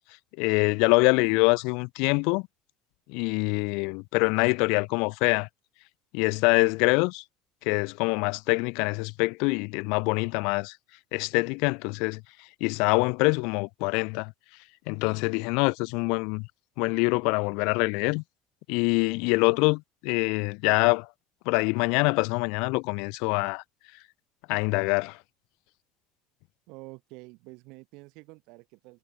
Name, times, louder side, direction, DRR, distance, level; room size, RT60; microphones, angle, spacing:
voice 1, 0.4-2.4 3.1-5.5 6.1-7.2 7.7-10.7 11.1-12.2 12.6-14.3 14.9-16.5 16.8-18.2 18.7-21.1 21.5-23.6 24.5-25.2, left 31 dB, 70° left, 0.6 m, -25 dB
voice 2, 26.7-29.0, right 26 dB, 65° right, 5.7 m, -48 dB
hypercardioid pair, 75°, 0 cm